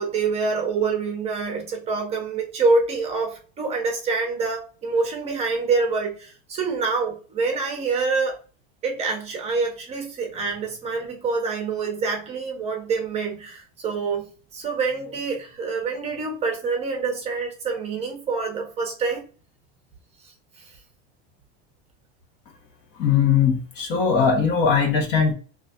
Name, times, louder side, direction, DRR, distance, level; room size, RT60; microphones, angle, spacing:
voice 1, 0.0-8.4 8.8-19.2 20.2-20.3 20.6-20.7, right 4 dB, 20° right, 0.7 m, -26 dB
voice 2, 23.0-25.3, left 6 dB, 30° left, 0.7 m, -20 dB
3.7 x 2.2 x 2.7 m
supercardioid pair, 160°, 34 cm